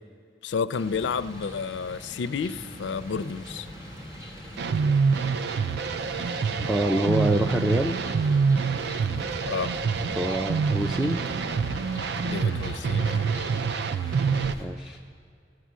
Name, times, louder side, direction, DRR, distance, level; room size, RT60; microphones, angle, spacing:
voice 1, 0.4-3.7 9.4-9.7 12.2-13.3, left 5 dB, 85° left, 14 dB, 0.4 m, -31 dB
sound 1, 0.7-14.6, equal, 20° right, 2.5 m, -41 dB
sound 2, 4.6-14.5, right 5 dB, 65° right, 0.4 m, -26 dB
voice 2, 6.6-8.0 10.1-11.2 14.6-15.0, right 1 dB, 5° right, 4 dB, 0.4 m, -26 dB
13.5 x 8.2 x 7.4 m, 2.4 s
head